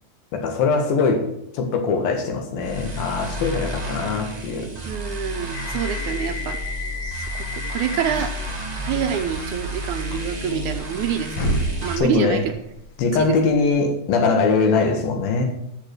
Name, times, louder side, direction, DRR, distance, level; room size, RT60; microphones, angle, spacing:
voice 1, 0.3-1.2 1.5-4.7 12.0-12.5 13.0-15.4, left 4 dB, 85° left, 4 dB, 3.5 m, -21 dB
sound 1, 2.6-12.0, equal, 35° right, 0.6 m, -31 dB
voice 2, 4.8-6.6 7.0-8.3 8.8-12.5 13.1-13.4, right 9 dB, 75° right, 6 dB, 1.9 m, -27 dB
sound 2, 5.5-13.9, left 1 dB, 60° left, 1.3 m, -32 dB
12.5 x 6.9 x 6.2 m, 0.79 s
omnidirectional pair, 4.1 m